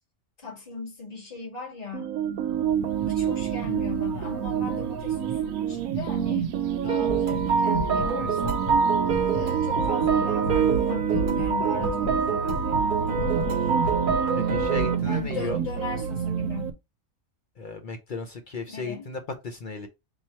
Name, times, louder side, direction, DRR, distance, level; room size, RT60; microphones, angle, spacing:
voice 1, 0.4-2.1 3.0-6.5 6.8-8.6 9.3-12.9 13.2-13.8 15.0-16.7 18.7-19.1, left 4 dB, 30° left, 2.0 m, -38 dB
sound 1, 1.9-16.7, right 8 dB, 80° right, 1.0 m, -28 dB
sound 2, 6.9-15.0, right 5 dB, 50° right, 0.7 m, -26 dB
sound 3, 7.0-9.5 9.8-10.1 10.4-11.5 11.8-12.9 13.1-14.9, left 1 dB, 90° left, 1.4 m, -32 dB
voice 2, 14.5-15.6 17.6-19.9, left 4 dB, 60° left, 0.5 m, -35 dB
3.6 x 3.0 x 4.1 m
omnidirectional pair, 1.5 m